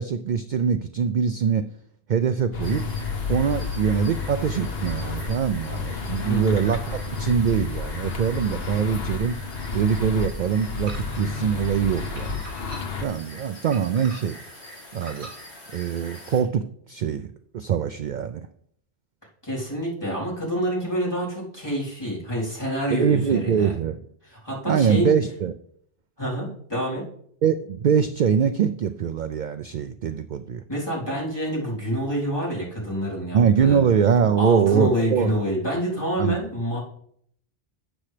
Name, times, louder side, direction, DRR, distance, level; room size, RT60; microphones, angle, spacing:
voice 1, 0.0-1.6 2.1-2.8 3.3-9.4 9.7-12.4 13.0-14.4 14.9-15.3 15.7-17.3 17.5-18.5 23.0-24.0 24.7-25.5 27.4-30.6 33.3-35.3 36.2-36.4, right 7 dB, 55° right, 11 dB, 0.5 m, -23 dB
sound 1, 2.5-13.0, left 4 dB, 65° left, 1.3 m, -31 dB
sound 2, 2.6-16.4, left 1 dB, 50° left, 3.0 m, -44 dB
voice 2, 6.3-6.6 19.4-23.7 24.2-25.1 26.2-27.1 30.7-33.8 34.4-36.8, equal, 25° left, -6 dB, 3.7 m, -27 dB
sound 3, 10.9-11.4 12.2-13.1 13.7-14.4 15.0-15.4, right 2 dB, 85° right, 3.3 m, -43 dB
12.5 x 8.6 x 3.3 m, 0.66 s
omnidirectional pair, 1.1 m